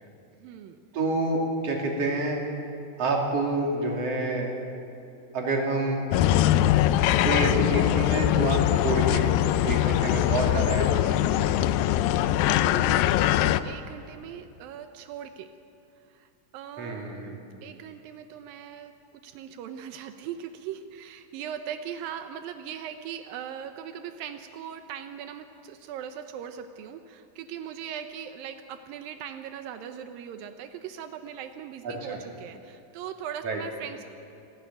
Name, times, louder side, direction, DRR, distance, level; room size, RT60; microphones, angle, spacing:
voice 1, 0.4-0.8 12.6-15.5 16.1-18.9 19.2-34.0, right 9 dB, 85° right, 7 dB, 2.6 m, -40 dB
voice 2, 0.9-2.4 3.0-4.6 5.3-6.0 7.2-11.6 16.8-17.4 31.8-32.2 33.4-33.6, right 2 dB, 45° right, 0 dB, 3.6 m, -28 dB
sound 1, 6.1-13.6, left 13 dB, 85° left, 2.4 m, -22 dB
28.5 x 12.5 x 9.2 m, 2.7 s
omnidirectional pair, 4.0 m